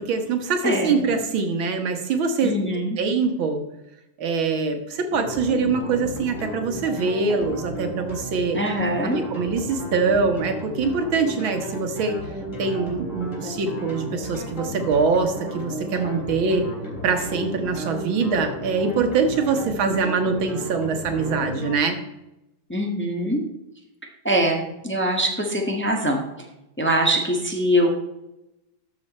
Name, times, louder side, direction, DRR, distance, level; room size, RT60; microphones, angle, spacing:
voice 1, 0.0-2.7 3.0-3.6 4.2-8.6 9.1-12.2 12.6-16.7 17.0-22.0, right 4 dB, 85° right, 6 dB, 2.1 m, -23 dB
voice 2, 0.6-1.0 2.4-3.0 8.5-9.2 22.7-23.4 24.2-26.2 26.8-28.0, equal, 5° left, 0 dB, 1.3 m, -23 dB
sound 1, 5.1-21.7, equal, 40° left, 3.9 m, -34 dB
13.0 x 6.3 x 4.3 m, 0.91 s
omnidirectional pair, 2.1 m